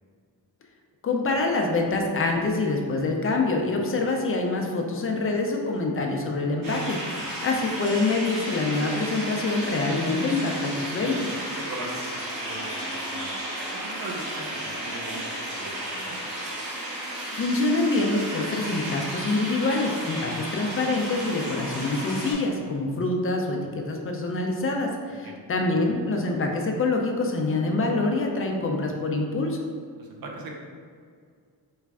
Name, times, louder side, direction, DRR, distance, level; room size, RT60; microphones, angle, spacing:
voice 1, 1.0-11.4 17.3-29.6, left 3 dB, 35° left, 2 dB, 0.4 m, -26 dB
sound 1, 6.6-22.3, right 1 dB, 90° right, 1.2 m, -33 dB
voice 2, 11.5-13.3 13.7-15.2 15.5-16.2 25.2-25.4 30.0-30.5, right 2 dB, 65° right, 0 dB, 0.6 m, -39 dB
3.2 x 2.4 x 3.4 m, 2.1 s
wide cardioid pair, 140°, 39 cm